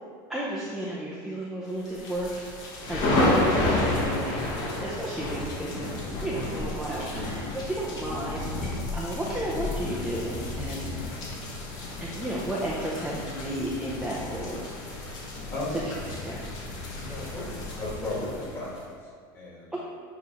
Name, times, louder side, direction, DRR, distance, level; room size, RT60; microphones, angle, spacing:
voice 1, 0.3-2.5 2.9-11.3 12.0-14.9 15.7-15.8 16.1-16.5 19.7-19.8, right 1 dB, ahead, -7 dB, 0.6 m, -33 dB
sound 1, 1.9-18.8, left 2 dB, 35° left, 1.4 m, -31 dB
voice 2, 7.1-7.5 15.5-15.8 17.1-18.8 19.3-19.8, left 2 dB, 20° left, -5 dB, 1.7 m, -35 dB
8.3 x 3.1 x 5.1 m, 2.1 s
cardioid pair, 170°, 11 cm